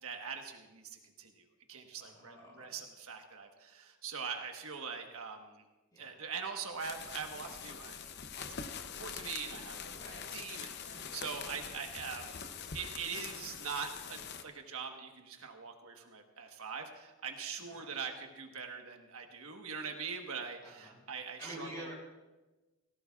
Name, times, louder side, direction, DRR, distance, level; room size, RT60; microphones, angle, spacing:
voice 1, 0.0-5.6 6.0-8.0 8.3-8.4 9.0-9.9 10.3-12.4 12.7-21.9, right 6 dB, 85° right, 4 dB, 1.3 m, -42 dB
voice 2, 2.0-2.8 5.9-6.2 10.0-10.2 17.6-17.9 20.6-21.0 21.4-21.9, equal, 20° left, -4 dB, 5.6 m, -48 dB
sound 1, 6.7-14.4, left 6 dB, 50° left, 0.7 m, -44 dB
18.5 x 16.0 x 2.4 m, 1.1 s
head